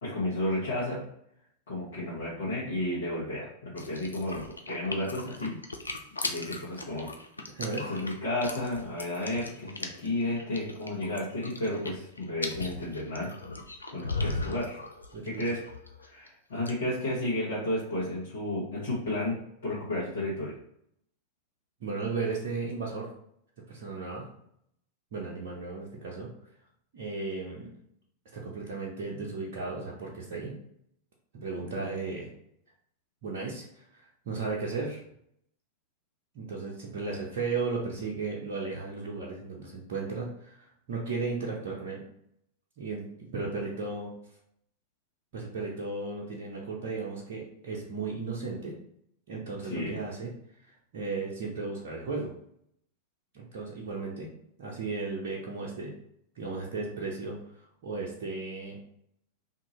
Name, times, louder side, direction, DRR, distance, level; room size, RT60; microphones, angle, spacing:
voice 1, 0.0-1.0 1.7-5.5 6.2-7.1 7.9-13.3 13.9-14.8 15.2-15.6 16.0-19.4 19.6-20.5 31.6-31.7 49.7-50.0, left 1 dB, 65° left, -9 dB, 1.2 m, -32 dB
sound 1, 3.8-16.3 16.5-16.7, left 2 dB, 80° left, 0.4 m, -38 dB
voice 2, 7.5-7.9 15.1-15.5 21.8-23.1 23.7-24.3 25.1-26.3 26.9-27.7 28.3-30.5 31.3-32.3 33.2-35.0 36.3-42.0 42.8-44.1 45.3-48.8 49.3-50.3 50.9-52.3 53.3-54.3 54.6-55.9 56.4-58.8, right 4 dB, 50° right, -4 dB, 0.7 m, -35 dB
2.7 x 2.6 x 2.9 m, 0.71 s
figure-of-eight pair, 90°, 0 cm